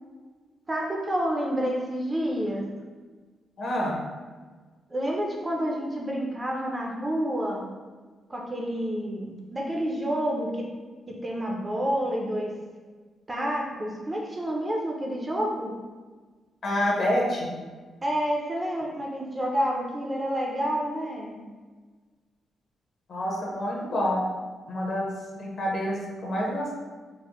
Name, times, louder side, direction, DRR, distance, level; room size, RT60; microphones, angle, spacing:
voice 1, 0.7-2.7 4.9-7.7 8.3-10.7 11.1-12.5 13.3-15.7 18.0-21.4, equal, 20° right, -1 dB, 0.4 m, -29 dB
voice 2, 3.6-4.0 16.6-17.5 23.1-24.3 24.7-26.8, equal, 45° left, -3 dB, 0.8 m, -27 dB
3.9 x 2.0 x 3.0 m, 1.4 s
cardioid pair, 135°, 0 cm